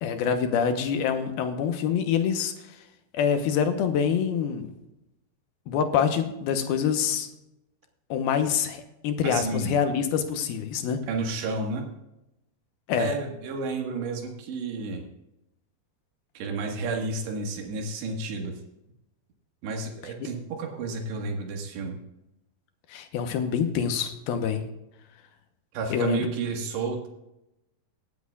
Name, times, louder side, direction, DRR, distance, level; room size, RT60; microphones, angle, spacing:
voice 1, 0.0-2.5 3.1-4.7 5.7-7.3 8.1-11.0 12.9-13.1 22.9-24.6 25.9-26.2, left 7 dB, 75° left, 7 dB, 2.7 m, -26 dB
voice 2, 9.2-9.8 11.1-11.8 13.0-15.0 16.4-18.6 19.6-22.0 25.7-27.1, right 3 dB, 90° right, 2 dB, 3.9 m, -31 dB
18.0 x 10.5 x 2.4 m, 0.89 s
omnidirectional pair, 4.9 m